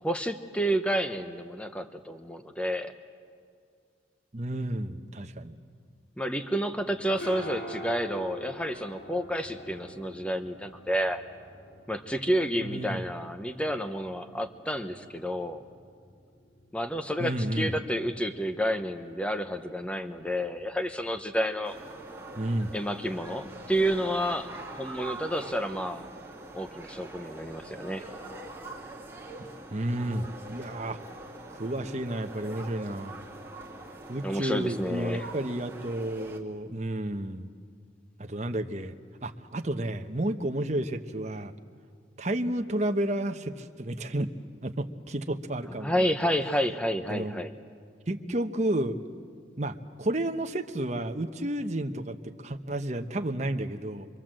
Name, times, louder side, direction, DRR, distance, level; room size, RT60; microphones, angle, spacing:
voice 1, 0.0-2.9 6.2-11.2 11.9-15.6 16.7-21.8 22.7-26.1 26.5-28.0 34.2-35.3 45.8-47.5, equal, 5° left, 8 dB, 1.0 m, -30 dB
voice 2, 4.3-5.5 12.6-13.0 17.2-17.7 22.3-22.7 29.7-31.0 31.5-33.2 34.1-37.5 38.2-38.9 39.2-41.5 42.2-44.3 44.6-46.1 47.1-47.4 48.1-49.0 49.6-54.1, right 1 dB, 40° right, 6 dB, 1.0 m, -31 dB
sound 1, 6.7-24.2, equal, 65° left, 5.1 m, -47 dB
sound 2, 21.6-36.4, right 2 dB, 10° right, 2.3 m, -43 dB
28.0 x 23.0 x 7.7 m, 2.2 s
head